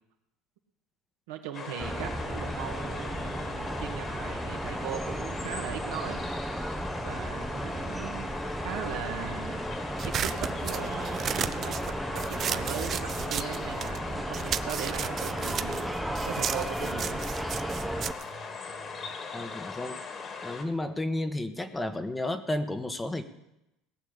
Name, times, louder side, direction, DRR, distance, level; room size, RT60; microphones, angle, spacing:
voice 1, 1.3-6.2 7.0-8.3 8.6-9.7 10.1-17.2, right 9 dB, 80° right, 4 dB, 1.8 m, -39 dB
sound 1, 1.5-20.6, left 5 dB, 40° left, 2.1 m, -40 dB
sound 2, 1.8-18.1, right 1 dB, 5° right, 0.8 m, -34 dB
sound 3, 10.0-14.0 14.3-19.1, right 9 dB, 45° right, 0.6 m, -34 dB
voice 2, 19.3-20.0 20.4-23.2, left 1 dB, 15° left, 9 dB, 1.1 m, -32 dB
17.5 x 6.2 x 8.7 m, 0.89 s
hypercardioid pair, 90°, 0 cm